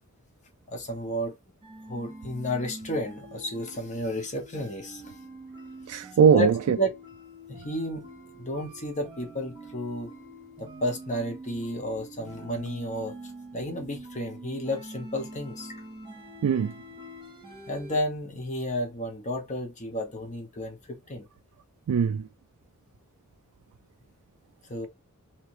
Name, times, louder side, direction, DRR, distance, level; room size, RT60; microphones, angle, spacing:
voice 1, 0.7-1.4 1.9-5.1 6.2-6.9 7.5-8.1 8.4-10.1 10.6-13.2 13.5-15.8 17.7-21.3 24.7-24.9, left 1 dB, 35° left, 1.0 m, -32 dB
sound 1, 1.6-18.0, right 1 dB, 20° right, 1.0 m, -45 dB
voice 2, 5.9-6.8 16.4-16.7 21.9-22.3, right 7 dB, 85° right, 0.3 m, -21 dB
3.2 x 3.0 x 2.9 m
head